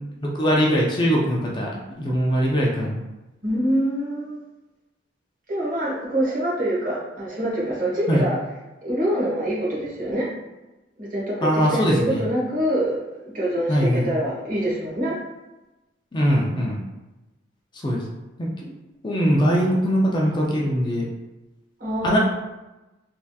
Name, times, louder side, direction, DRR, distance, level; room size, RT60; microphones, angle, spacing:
voice 1, 0.2-3.0 8.1-8.2 11.4-12.2 13.7-14.1 16.1-16.8 17.8-18.0 18.4-18.5 19.0-21.1 22.0-22.2, equal, 25° left, -3 dB, 0.4 m, -21 dB
voice 2, 3.4-4.4 5.5-8.4 8.8-10.3 11.0-15.1 21.8-22.2, right 1 dB, 45° right, -6 dB, 1.1 m, -25 dB
3.3 x 2.7 x 2.3 m, 1.0 s
head